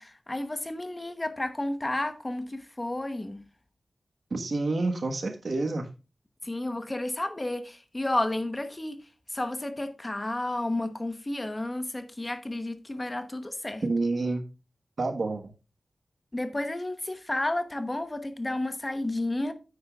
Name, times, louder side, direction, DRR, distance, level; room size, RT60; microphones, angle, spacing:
voice 1, 0.0-3.4 6.4-9.0 9.3-13.8 16.3-19.5, left 1 dB, 25° left, 1.0 m, -31 dB
voice 2, 4.3-5.9 13.8-14.4 15.0-15.4, right 3 dB, 65° right, 1.4 m, -28 dB
9.1 x 9.0 x 2.4 m
wide cardioid pair, 85°, 0 cm